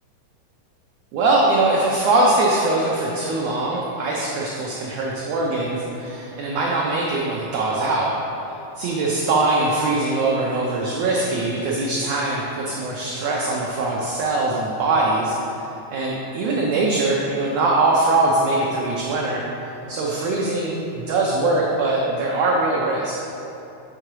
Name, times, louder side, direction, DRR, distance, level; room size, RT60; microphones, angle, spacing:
voice 1, 1.1-8.1 8.8-15.4 15.9-19.4 19.9-23.2, right 2 dB, 85° right, -3 dB, 1.4 m, -22 dB
7.7 x 3.8 x 4.7 m, 2.9 s
omnidirectional pair, 3.8 m